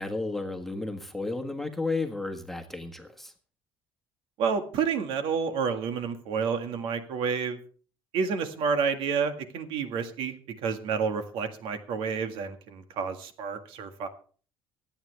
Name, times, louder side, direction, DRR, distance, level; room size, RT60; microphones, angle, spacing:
voice 1, 0.0-3.3, left 3 dB, 5° left, 1.5 m, -33 dB
voice 2, 4.4-7.6 8.1-10.3 10.6-14.1, right 6 dB, 75° right, 1.8 m, -29 dB
24.5 x 8.9 x 3.4 m
cardioid pair, 150°, 9 cm